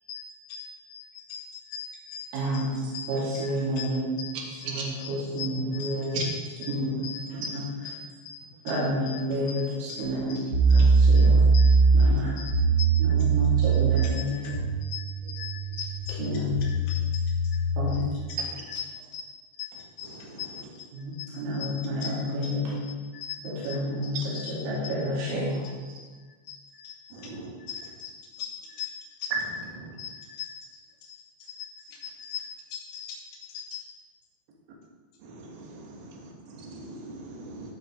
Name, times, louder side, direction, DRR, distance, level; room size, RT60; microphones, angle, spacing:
voice 1, 0.9-2.2 2.5-2.6 2.9-3.1 3.3-3.5 3.7-4.7 5.0-6.3 6.6-6.7 7.0-7.6 7.8-8.0 8.2-8.4 8.7-8.8 9.1-9.6 9.9-10.0 10.3-10.4 10.7-10.9 11.1-13.0 13.9-14.6 14.9-18.0 18.3-18.4 18.7-18.9 19.1-19.2 19.5-20.9 21.1-22.2 22.4-24.9 25.6-25.7 26.4-28.9 30.0-30.6 31.0-31.2 31.5-33.2 33.5-33.8, left 8 dB, 55° left, -6 dB, 3.7 m, -41 dB
voice 2, 2.3-2.8 3.1-4.0 4.6-6.1 6.7-7.0 7.5-7.6 8.7-10.4 10.7-11.4 12.0-12.4 13.0-14.4 16.2-16.5 17.8-18.0 20.9-22.8 23.7-24.2 24.5-25.6, equal, 80° right, -8 dB, 5.2 m, -29 dB
sound 1, 10.5-18.0, right 4 dB, 20° right, 3.2 m, -22 dB
voice 3, 27.1-27.5 29.7-29.9 35.2-37.7, right 4 dB, 60° right, -1 dB, 3.0 m, -38 dB
16.0 x 5.4 x 4.4 m, 1.4 s
omnidirectional pair, 5.9 m